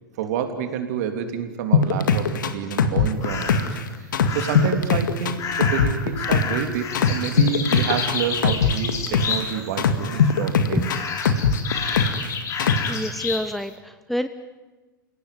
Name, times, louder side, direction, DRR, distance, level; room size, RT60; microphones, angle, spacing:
voice 1, 0.2-3.8 4.3-11.0, right 8 dB, 50° right, 6 dB, 3.4 m, -28 dB
sound 1, 1.7-3.8 4.1-6.6 6.9-9.4 9.8-12.3 12.6-13.0, left 6 dB, 65° left, 2.0 m, -20 dB
sound 2, 3.2-3.8 4.2-4.8 5.4-9.7 10.0-10.5 10.8-13.5, left 5 dB, 30° left, 3.7 m, -30 dB
voice 2, 12.9-14.3, equal, ahead, 9 dB, 0.9 m, -27 dB
29.5 x 17.5 x 9.6 m, 1.2 s
figure-of-eight pair, 95°, 11 cm